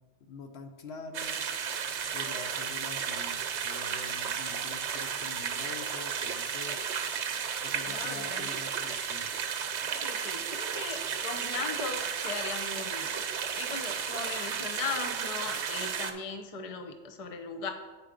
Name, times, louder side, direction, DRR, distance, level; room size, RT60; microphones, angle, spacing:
voice 1, 0.2-1.4 2.1-6.8 7.6-9.3, left 4 dB, 65° left, 6 dB, 0.9 m, -45 dB
sound 1, 1.1-16.1, right 7 dB, 80° right, 1.0 m, -33 dB
voice 2, 7.8-8.5 9.9-17.7, left 4 dB, 35° left, 4 dB, 0.6 m, -38 dB
8.3 x 4.7 x 5.0 m, 1.3 s
omnidirectional pair, 1.2 m